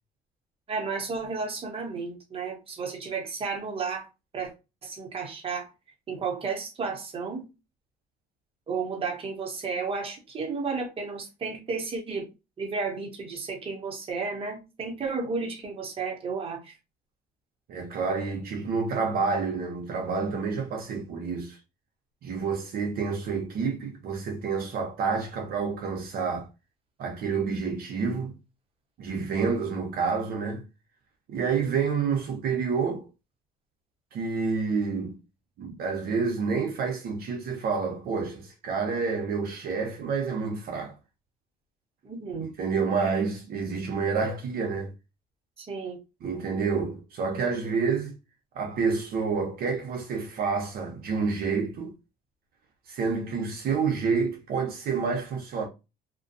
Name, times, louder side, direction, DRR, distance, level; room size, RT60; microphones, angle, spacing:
voice 1, 0.7-4.1 4.3-4.5 4.8-5.7 6.1-7.4 8.7-12.3 12.6-16.7 42.0-42.5 45.6-46.0, right 4 dB, 35° right, 0.9 m, -32 dB
voice 2, 17.7-21.6 22.2-26.5 27.0-28.4 29.0-30.6 31.3-33.1 34.1-35.2 35.6-40.9 42.6-44.9 46.2-48.1 48.5-51.9 52.9-55.7, right 5 dB, 60° right, 0.6 m, -28 dB
2.5 x 2.2 x 2.6 m
cardioid pair, 110°, 17 cm